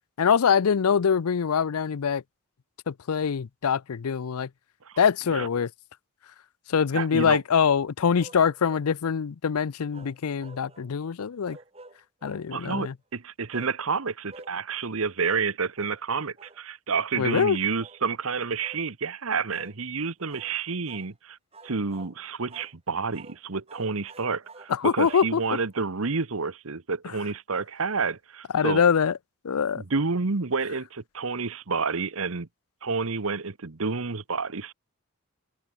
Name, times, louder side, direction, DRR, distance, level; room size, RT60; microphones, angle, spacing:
voice 1, 0.2-2.2 2.9-4.5 5.0-5.7 6.7-11.6 12.2-12.9 17.2-17.6 24.7-25.4 28.5-29.2 29.4-29.8, left 6 dB, 85° left, 0.5 m, -24 dB
voice 2, 6.9-7.4 12.5-21.4 21.6-28.8 29.8-32.5 32.8-34.7, right 4 dB, 75° right, 1.1 m, -29 dB
sound 1, 8.2-8.9 9.9-10.9 11.4-12.5 13.5-13.8 14.3-14.6 15.2-15.5 15.8-16.0 16.4-16.6 17.3-17.5 17.8-18.0 18.6-18.9 19.5-19.8 20.3-20.5 20.9-21.1 21.5-22.2 22.5-22.8 23.1-23.4 23.7-25.8, right 3 dB, 25° right, 3.3 m, -49 dB
open air
head